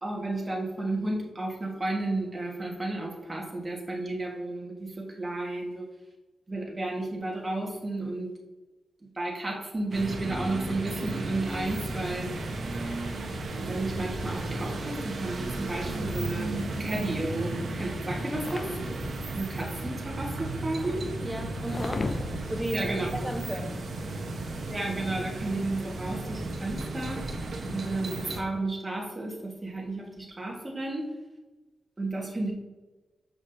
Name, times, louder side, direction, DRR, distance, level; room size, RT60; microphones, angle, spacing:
voice 1, 0.0-5.9 6.5-8.3 9.0-12.3 13.6-16.5 16.8-18.8 19.3-21.0 22.7-23.3 24.7-27.3 27.7-31.1 32.0-32.5, right 2 dB, 25° right, -1 dB, 1.5 m, -32 dB
sound 1, 9.9-28.4, right 2 dB, 70° right, 1.0 m, -34 dB
sound 2, 15.4-24.9, left 3 dB, 50° left, 0.5 m, -42 dB
voice 2, 21.2-22.1 22.5-24.4, right 1 dB, 10° right, 5 dB, 0.9 m, -35 dB
6.2 x 5.8 x 2.7 m, 1.2 s
cardioid pair, 70°, 0 cm